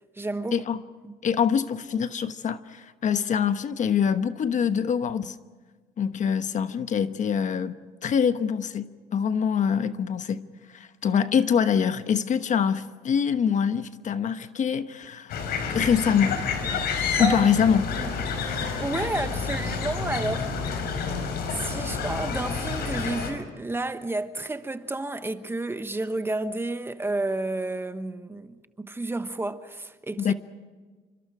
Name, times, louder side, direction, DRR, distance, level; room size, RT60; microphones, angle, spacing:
voice 1, 0.2-0.6 1.0-1.1 17.2-17.5 18.0-18.1 18.8-20.6 21.5-30.3, right 2 dB, 15° right, 1.2 m, -31 dB
voice 2, 1.2-5.4 6.0-7.8 8.0-15.3 15.7-16.4 17.2-17.9 30.2-30.3, left 7 dB, 45° left, 1.2 m, -24 dB
sound 1, 15.3-23.3, left 5 dB, 70° left, 4.9 m, -29 dB
28.5 x 25.5 x 5.0 m
cardioid pair, 110°, 17 cm